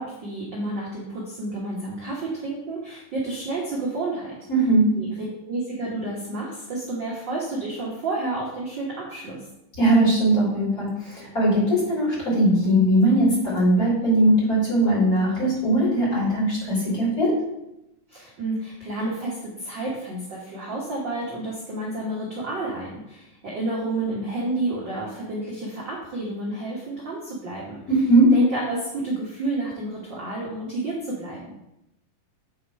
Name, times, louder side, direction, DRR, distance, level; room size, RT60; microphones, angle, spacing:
voice 1, 0.0-4.4 5.0-5.1 5.4-9.4 18.1-27.8 28.3-31.5, right 2 dB, 60° right, -4 dB, 1.2 m, -30 dB
voice 2, 4.5-4.9 9.8-17.3 27.9-28.3, right 1 dB, 25° left, -8 dB, 3.4 m, -20 dB
8.7 x 4.3 x 4.8 m, 0.88 s
omnidirectional pair, 4.0 m